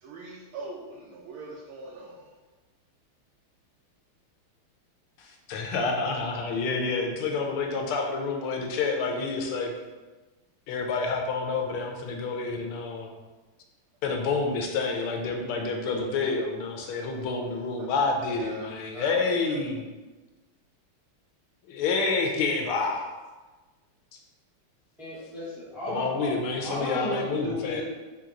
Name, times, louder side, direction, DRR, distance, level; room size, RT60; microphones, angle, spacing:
voice 1, 0.0-2.3 17.8-17.9 18.4-19.6, right 2 dB, 80° right, -3 dB, 1.5 m, -42 dB
voice 2, 5.2-9.7 10.7-13.1 14.0-19.8 21.7-23.1 25.9-27.8, left 4 dB, 85° left, 2 dB, 1.5 m, -28 dB
voice 3, 25.0-26.3 26.6-27.8, left 1 dB, ahead, -10 dB, 0.5 m, -34 dB
4.6 x 2.9 x 3.7 m, 1.2 s
omnidirectional pair, 2.4 m